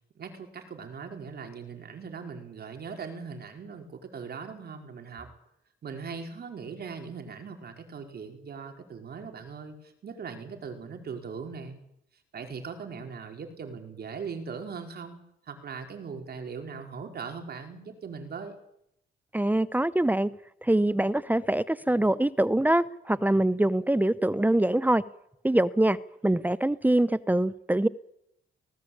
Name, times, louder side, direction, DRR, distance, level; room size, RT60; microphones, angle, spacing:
voice 1, 0.1-5.3 5.8-11.8 12.3-15.2 15.5-18.6, right 5 dB, 55° right, 4 dB, 4.9 m, -40 dB
voice 2, 19.3-20.3 20.6-25.0 25.4-26.0 26.2-27.9, right 1 dB, 10° right, 17 dB, 0.8 m, -24 dB
19.5 x 19.0 x 8.8 m, 0.77 s
cardioid pair, 90°, 20 cm